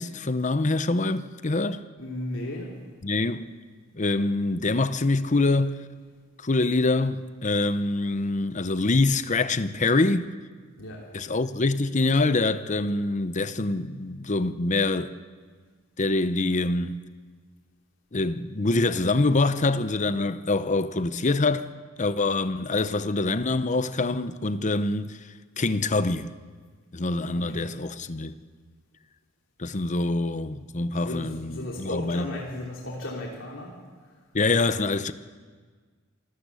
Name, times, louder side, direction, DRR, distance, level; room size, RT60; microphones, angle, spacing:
voice 1, 0.0-1.8 3.0-3.4 3.9-5.8 6.4-10.3 11.1-15.1 16.0-17.0 18.1-21.7 22.0-25.2 25.6-26.3 26.9-28.4 29.6-32.3 34.3-35.1, left 2 dB, 40° left, 0.8 m, -25 dB
voice 2, 2.0-2.7 10.7-11.0 27.3-27.7 31.0-33.7 34.0-34.1, left 1 dB, 75° left, 3.2 m, -35 dB
26.0 x 13.5 x 8.3 m
head